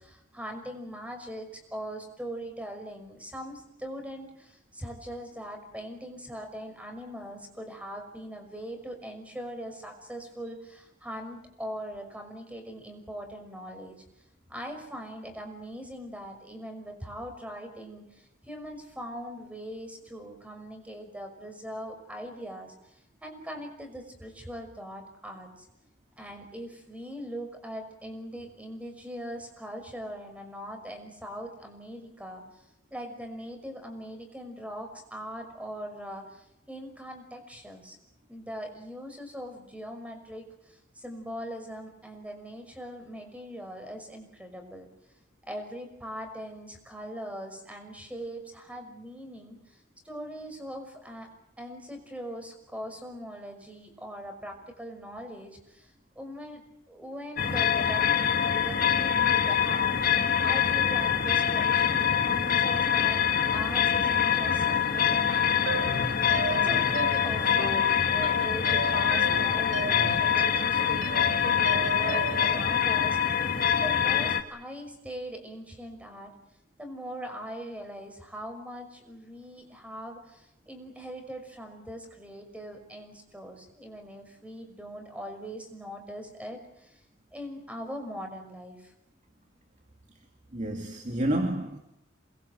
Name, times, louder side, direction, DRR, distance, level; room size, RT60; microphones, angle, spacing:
voice 1, 0.0-14.0 14.5-25.7 26.2-32.4 32.9-38.0 38.3-44.9 45.4-49.8 50.0-51.3 51.6-56.6 56.9-58.0 58.4-63.2 63.5-73.4 73.7-76.3 76.8-87.0 87.3-88.9, equal, 5° right, 5 dB, 5.9 m, -41 dB
sound 1, 57.4-74.4, left 8 dB, 50° left, 2.0 m, -25 dB
sound 2, 65.7-72.5, right 3 dB, 70° right, 1.9 m, -35 dB
voice 2, 90.5-91.8, right 1 dB, 40° right, 4 dB, 2.4 m, -29 dB
28.0 x 22.0 x 8.0 m, 0.81 s
head